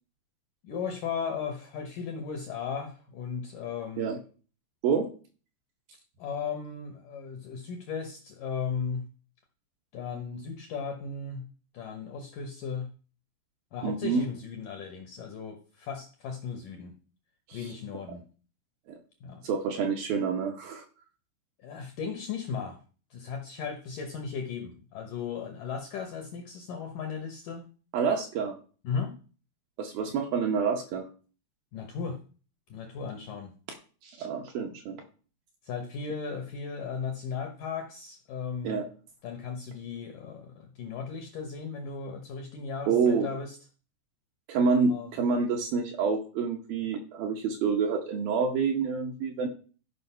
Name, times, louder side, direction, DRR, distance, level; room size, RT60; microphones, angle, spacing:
voice 1, 0.6-4.1 6.2-9.0 9.9-11.4 11.7-12.9 13.7-17.0 17.5-18.2 19.2-19.4 21.6-22.8 23.1-27.7 28.8-29.1 31.7-32.2 32.7-33.5 35.6-38.9 39.2-43.6 44.9-45.1, left 6 dB, 70° left, 4 dB, 2.0 m, -36 dB
voice 2, 13.8-14.3 17.5-17.6 18.9-19.0 19.4-20.8 27.9-28.6 29.8-31.1 34.0-35.0 38.6-38.8 42.9-43.3 44.5-49.5, right 5 dB, 70° right, 3 dB, 2.4 m, -27 dB
13.0 x 5.3 x 5.6 m, 0.38 s
omnidirectional pair, 5.2 m